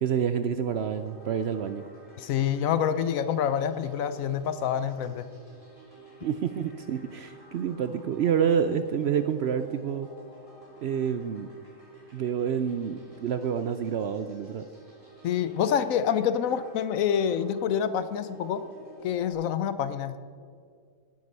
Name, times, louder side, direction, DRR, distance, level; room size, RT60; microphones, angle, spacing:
voice 1, 0.0-1.9 6.2-10.1 10.8-11.5 12.1-14.6, right 8 dB, 65° right, 10 dB, 0.6 m, -28 dB
sound 1, 0.7-19.3, right 3 dB, 25° right, 2.9 m, -51 dB
voice 2, 2.2-5.3 15.2-18.6 19.0-20.2, left 8 dB, 70° left, 12 dB, 1.0 m, -27 dB
17.0 x 7.8 x 5.4 m, 2.2 s
omnidirectional pair, 1.5 m